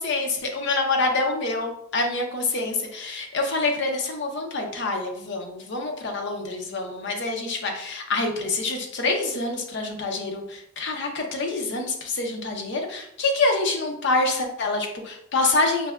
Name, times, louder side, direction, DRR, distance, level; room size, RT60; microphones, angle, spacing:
voice 1, 0.0-15.9, left 3 dB, 60° left, 3 dB, 0.6 m, -26 dB
5.4 x 2.1 x 2.3 m, 0.72 s
head